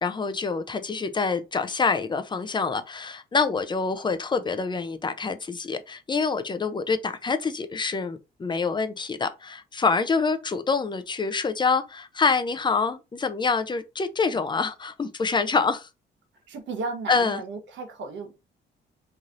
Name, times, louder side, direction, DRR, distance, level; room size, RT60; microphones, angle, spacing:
voice 1, 0.0-15.9 17.1-17.4, left 4 dB, 25° left, 0.5 m, -26 dB
voice 2, 16.5-18.3, right 4 dB, 70° right, 1.1 m, -34 dB
3.1 x 2.7 x 2.5 m
cardioid pair, 90°, 20 cm